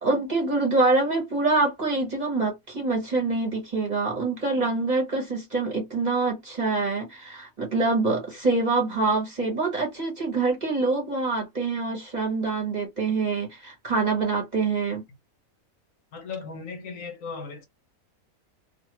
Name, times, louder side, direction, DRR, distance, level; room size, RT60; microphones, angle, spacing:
voice 1, 0.0-15.0, right 3 dB, 35° right, 1.0 m, -25 dB
voice 2, 16.1-17.7, left 5 dB, 70° left, 0.9 m, -37 dB
2.6 x 2.4 x 2.9 m
omnidirectional pair, 1.6 m